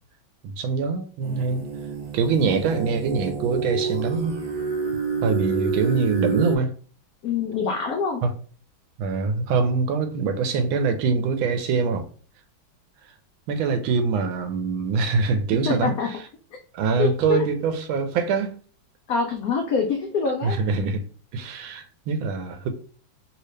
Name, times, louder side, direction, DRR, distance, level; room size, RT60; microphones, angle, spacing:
voice 1, 0.4-1.6 2.1-4.4 5.2-6.7 8.2-8.3 9.0-12.1 13.5-15.9 16.7-18.6 20.4-21.0 21.3-22.7, right 5 dB, 85° right, 1.4 m, -24 dB
sound 1, 1.2-6.6, right 5 dB, 60° right, 1.1 m, -28 dB
voice 2, 7.2-8.2 15.7-16.2 17.0-17.4 19.1-20.6, left 5 dB, 85° left, 0.7 m, -25 dB
3.2 x 2.8 x 3.2 m
omnidirectional pair, 2.2 m